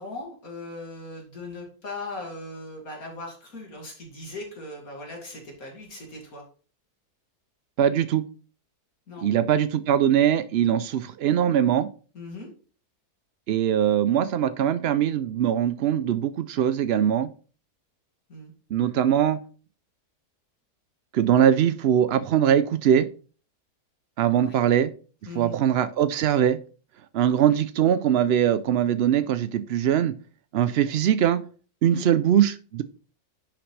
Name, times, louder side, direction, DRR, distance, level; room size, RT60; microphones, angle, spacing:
voice 1, 0.0-6.4 9.1-9.3 12.1-12.5 18.3-18.5 24.4-24.6 25.3-25.6 27.3-27.6 31.9-32.1, left 2 dB, 60° left, -1 dB, 2.7 m, -39 dB
voice 2, 7.8-8.2 9.2-11.9 13.5-17.3 18.7-19.4 21.1-23.1 24.2-24.9 25.4-26.6 27.1-30.1 30.5-31.4 31.8-32.8, right 10 dB, 85° right, 13 dB, 0.5 m, -21 dB
10.5 x 5.9 x 3.3 m, 0.38 s
omnidirectional pair, 1.7 m